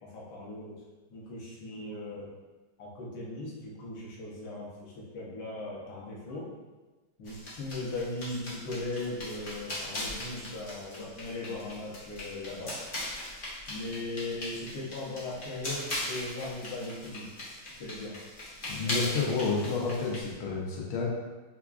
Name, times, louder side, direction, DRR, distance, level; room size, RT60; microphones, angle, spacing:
voice 1, 0.0-0.8 1.1-2.3 2.8-6.5 7.2-12.8 13.7-18.2 18.8-19.2, left 2 dB, 65° left, -5 dB, 1.4 m, -38 dB
sound 1, 7.3-20.3, left 1 dB, 50° left, 0.6 m, -39 dB
voice 2, 18.7-21.1, left 4 dB, 90° left, -3 dB, 1.5 m, -30 dB
4.7 x 2.3 x 2.3 m, 1.2 s
omnidirectional pair, 2.3 m